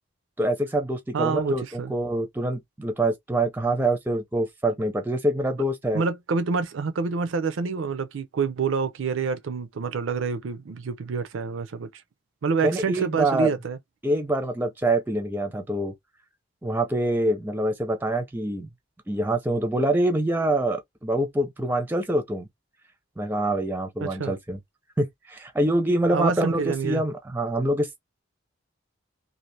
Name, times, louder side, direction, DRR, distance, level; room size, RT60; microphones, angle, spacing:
voice 1, 0.4-6.0 12.6-13.5 14.0-15.9 16.6-18.7 19.1-22.5 23.2-24.6 25.0-28.0, right 1 dB, 10° right, 0.4 m, -25 dB
voice 2, 1.1-1.9 5.9-12.0 12.4-13.8 24.0-24.3 26.1-27.0, right 5 dB, 85° right, 0.5 m, -27 dB
2.7 x 2.4 x 3.1 m
head